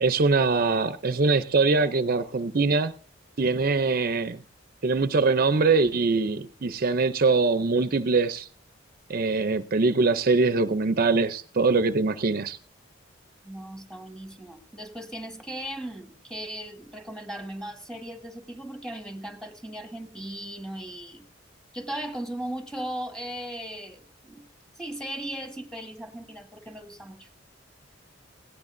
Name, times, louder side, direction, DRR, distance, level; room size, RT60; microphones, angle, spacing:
voice 1, 0.0-2.9 3.4-4.4 4.8-8.5 9.1-12.6, right 3 dB, 50° right, 12 dB, 0.6 m, -23 dB
voice 2, 13.4-21.3 21.7-24.5 24.8-27.3, right 1 dB, 5° left, 5 dB, 1.4 m, -37 dB
18.0 x 17.0 x 2.6 m, 0.41 s
head